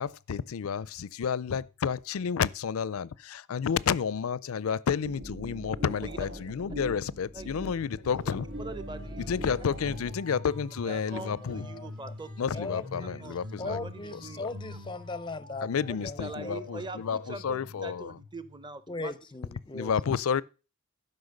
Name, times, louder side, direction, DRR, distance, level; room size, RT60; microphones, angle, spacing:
voice 1, 0.0-8.5 9.3-11.7 12.4-13.8 14.1-14.5 15.6-18.2 19.7-20.4, left 6 dB, 75° left, 0.4 m, -31 dB
sound 1, 5.0-10.2, equal, 90° right, 3.6 m, -41 dB
voice 2, 6.0-6.4 7.3-7.5 8.6-9.3 10.8-12.6 13.0-13.4 13.6-14.8 15.9-19.1, right 2 dB, 20° right, 0.7 m, -43 dB
sound 2, 7.6-19.0, left 1 dB, 75° right, 2.7 m, -48 dB
sound 3, 8.0-14.9, left 1 dB, 55° right, 2.5 m, -45 dB
voice 3, 12.5-13.3 13.6-15.7 16.0-16.6 18.9-19.9, left 3 dB, 20° left, 0.5 m, -38 dB
12.0 x 5.5 x 6.5 m
head